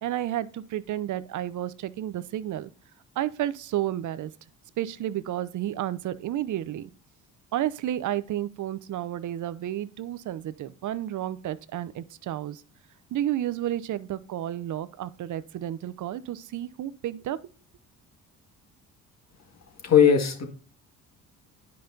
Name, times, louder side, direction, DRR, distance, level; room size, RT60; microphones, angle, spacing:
voice 1, 0.0-2.7 3.2-4.3 4.8-6.9 7.5-12.6 13.1-17.4, right 12 dB, 50° right, 0.6 m, -31 dB
voice 2, 19.8-20.5, left 8 dB, 40° left, 1.9 m, -18 dB
10.0 x 5.3 x 2.8 m
hypercardioid pair, 60°, 40 cm